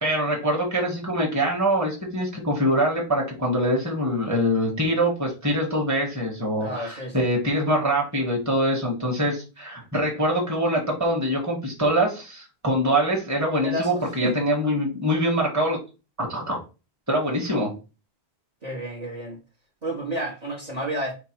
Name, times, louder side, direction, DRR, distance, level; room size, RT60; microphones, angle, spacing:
voice 1, 0.0-15.8 16.2-16.6 17.1-17.7, equal, 15° right, 1.3 m, -24 dB
voice 2, 6.6-7.3 13.6-14.3 18.6-19.4 19.8-21.1, right 1 dB, 40° right, 1.3 m, -30 dB
4.6 x 2.3 x 4.5 m
omnidirectional pair, 1.1 m